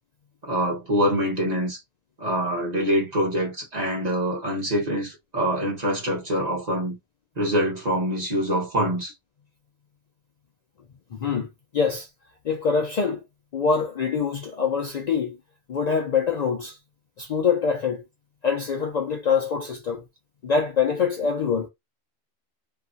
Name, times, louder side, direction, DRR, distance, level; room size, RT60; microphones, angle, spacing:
voice 1, 0.4-1.8 2.2-7.0 7.4-9.1, equal, 40° right, 1.2 m, -25 dB
voice 2, 11.1-11.5 11.7-12.1 12.4-13.2 13.5-15.4 15.7-16.8 17.2-18.0 18.4-20.0 20.4-21.7, left 6 dB, 55° left, 0.5 m, -24 dB
2.8 x 2.3 x 2.5 m
omnidirectional pair, 1.1 m